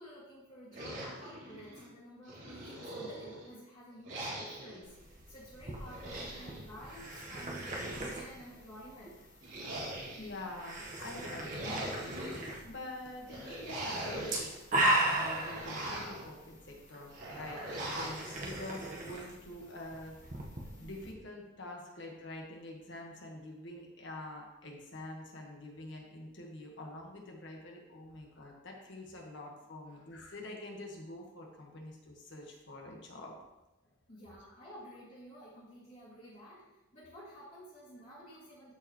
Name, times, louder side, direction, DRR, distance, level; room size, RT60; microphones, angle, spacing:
voice 1, 0.0-9.2 29.9-30.0 33.8-36.6 36.9-38.7, equal, 35° left, -12 dB, 2.3 m, -52 dB
sound 1, 0.7-1.9 2.3-3.5 4.0-4.8 5.8-6.6 7.4-8.4 9.4-10.4 11.2-12.4 13.3-14.5 14.9-16.2 17.1-18.3, right 1 dB, 65° right, 3.1 m, -41 dB
sound 2, 4.8-21.1, right 1 dB, 40° right, 1.2 m, -38 dB
voice 2, 10.0-20.2 20.8-33.4, left 1 dB, 60° left, 0 dB, 1.5 m, -46 dB
13.0 x 4.7 x 3.1 m, 0.99 s
head